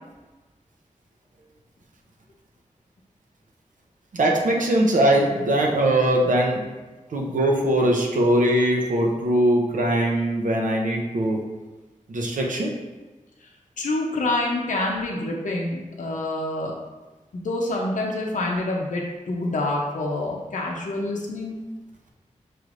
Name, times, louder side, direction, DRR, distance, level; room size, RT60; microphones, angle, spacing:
voice 1, 4.1-6.7 7.1-11.4 12.1-12.7, right 1 dB, 80° right, 0 dB, 0.7 m, -21 dB
voice 2, 13.8-16.8 17.3-21.6, left 2 dB, 75° left, -1 dB, 0.7 m, -27 dB
6.0 x 3.2 x 2.5 m, 1.2 s
wide cardioid pair, 70°, 13 cm